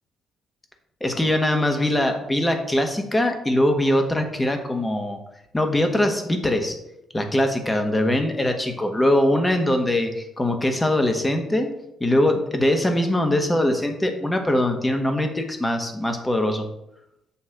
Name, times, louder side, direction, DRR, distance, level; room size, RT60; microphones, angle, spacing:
voice 1, 1.0-5.2 5.5-6.8 7.1-11.7 12.0-16.6, left 1 dB, 20° left, 5 dB, 1.3 m, -22 dB
7.0 x 3.2 x 5.2 m, 0.82 s
hypercardioid pair, 45°, 0 cm